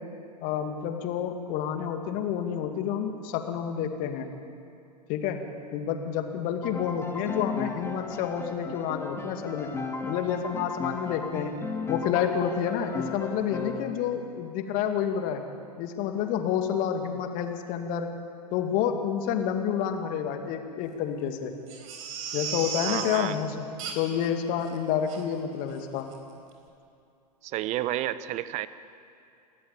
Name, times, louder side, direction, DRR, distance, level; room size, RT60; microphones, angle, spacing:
voice 1, 0.4-4.3 5.1-5.4 5.7-9.7 10.1-11.5 11.9-15.4 15.8-18.1 18.5-21.5 22.3-23.7 23.9-26.1, left 8 dB, 40° left, 6 dB, 2.3 m, -29 dB
Piano, 6.6-13.9, left 3 dB, 10° left, 1.9 m, -36 dB
Crying sobbing, 21.7-23.2 23.8-24.3 24.6-24.7 25.1-25.2 25.7-25.8 26.1-26.2, right 6 dB, 55° right, 4.0 m, -35 dB
voice 2, 22.8-23.4 27.4-28.7, right 14 dB, 35° right, 15 dB, 0.9 m, -30 dB
29.0 x 13.5 x 8.8 m, 2.5 s
figure-of-eight pair, 95°, 21 cm